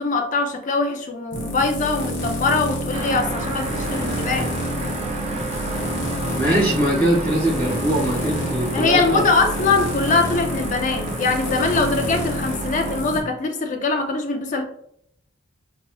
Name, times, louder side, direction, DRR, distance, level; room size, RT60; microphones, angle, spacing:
voice 1, 0.0-4.5 8.7-14.6, left 3 dB, 40° left, 4 dB, 0.5 m, -22 dB
sound 1, 1.3-13.2, left 1 dB, 60° left, 0.9 m, -28 dB
sound 2, 2.9-13.0, right 2 dB, 30° right, 0.4 m, -31 dB
voice 2, 6.3-9.2, right 1 dB, 10° left, -9 dB, 1.3 m, -21 dB
4.0 x 2.9 x 2.3 m, 0.70 s
head